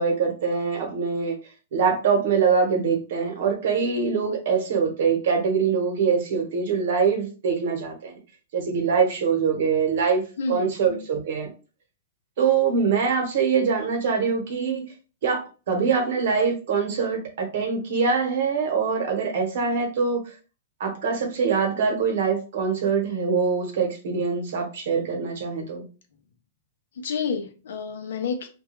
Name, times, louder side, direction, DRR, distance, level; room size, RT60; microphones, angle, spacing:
voice 1, 0.0-1.4 1.7-8.2 8.5-10.2 10.5-11.5 12.4-14.8 15.2-20.2 20.8-25.8, right 5 dB, 50° right, 2 dB, 0.9 m, -23 dB
voice 2, 10.4-11.0 27.0-28.5, left 5 dB, 70° left, 5 dB, 0.5 m, -30 dB
2.3 x 2.2 x 2.9 m, 0.35 s
hypercardioid pair, 175°, 0 cm